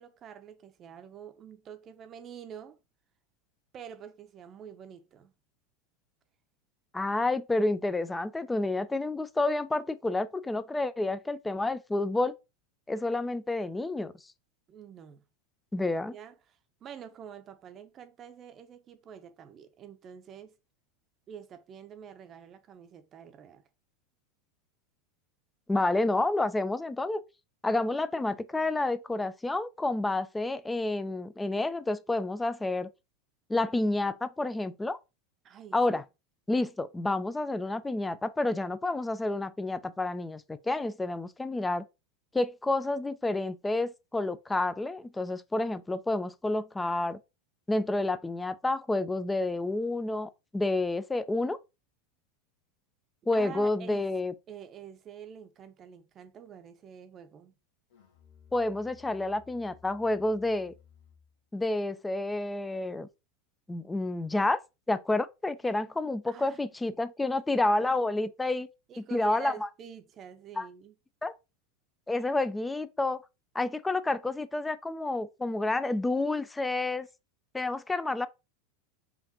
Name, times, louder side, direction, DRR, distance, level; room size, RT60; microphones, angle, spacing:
voice 1, 0.0-2.8 3.7-5.3 14.7-15.2 15.8-20.6 21.3-23.6 35.4-36.0 53.3-54.1 54.5-57.5 66.3-66.7 68.9-70.9, right 8 dB, 35° right, 0.6 m, -47 dB
voice 2, 6.9-12.3 12.9-14.1 15.7-16.1 25.7-27.2 27.6-32.9 33.5-35.0 35.7-36.0 36.5-41.8 42.3-47.2 47.7-51.6 53.3-54.3 58.5-60.7 61.5-63.1 63.7-64.6 64.9-68.7 69.1-69.7 70.6-70.7 71.2-71.3 72.1-73.2 73.5-77.1 77.5-78.3, left 2 dB, 10° left, 0.4 m, -29 dB
Musical instrument, 57.9-61.4, left 7 dB, 65° left, 1.2 m, -58 dB
5.0 x 2.5 x 2.8 m
figure-of-eight pair, 85°, 0 cm